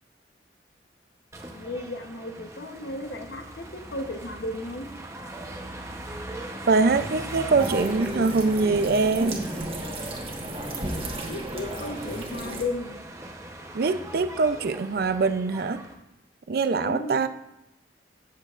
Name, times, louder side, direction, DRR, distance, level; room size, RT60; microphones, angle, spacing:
sound 1, 1.3-15.9, right 1 dB, 15° right, 0.8 m, -40 dB
voice 1, 1.5-4.9 11.3-12.9 16.7-17.2, left 2 dB, 70° left, 5 dB, 0.9 m, -34 dB
voice 2, 6.7-9.4 13.7-15.8 16.5-17.3, right 4 dB, 55° right, 11 dB, 0.4 m, -23 dB
sound 2, 7.6-12.6, right 1 dB, 35° right, 1.3 m, -33 dB
13.0 x 8.5 x 2.5 m, 0.87 s
head